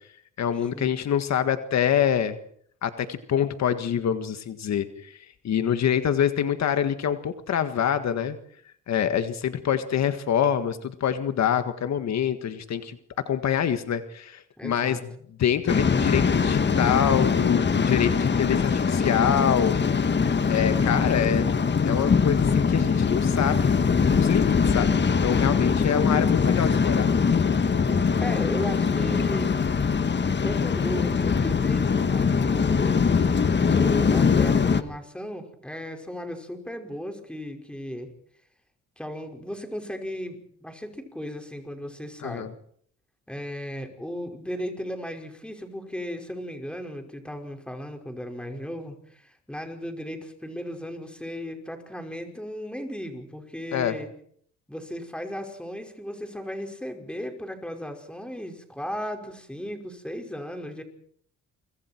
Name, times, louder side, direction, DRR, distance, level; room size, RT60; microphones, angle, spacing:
voice 1, 0.4-2.4 2.8-8.4 8.9-13.0 13.2-15.0 15.4-19.8 20.5-21.5 21.8-24.9 25.2-27.2 42.2-42.5 53.7-53.9, left 9 dB, 60° left, 9 dB, 1.7 m, -26 dB
voice 2, 14.6-15.0 28.2-29.6 30.4-33.0 33.7-38.1 39.0-42.5 43.3-54.1 54.7-60.8, equal, 5° left, 4 dB, 5.5 m, -35 dB
Waves surf, 15.7-34.8, left 5 dB, 35° left, 1.8 m, -22 dB
29.0 x 25.5 x 4.6 m, 0.63 s
cardioid pair, 90°, 30 cm